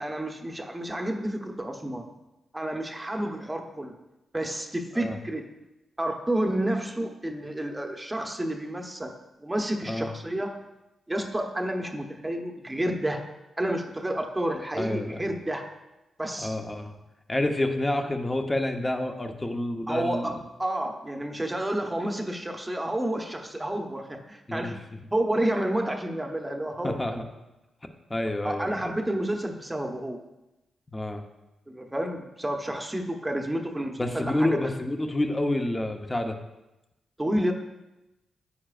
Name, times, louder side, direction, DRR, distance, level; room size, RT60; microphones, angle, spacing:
voice 1, 0.0-2.1 2.5-3.9 4.3-5.4 6.0-9.1 9.4-10.5 11.1-13.2 13.6-15.7 16.2-16.6 19.9-20.3 20.6-24.8 25.1-27.0 28.4-30.2 31.7-34.5 37.2-37.5, right 1 dB, 15° right, 3 dB, 1.0 m, -30 dB
voice 2, 14.8-15.4 16.4-16.9 17.3-20.4 24.5-24.8 26.8-27.3 28.1-28.9 30.9-31.2 34.0-36.4, left 1 dB, 20° left, 4 dB, 0.9 m, -28 dB
9.8 x 9.0 x 2.5 m, 0.98 s
cardioid pair, 70°, 0 cm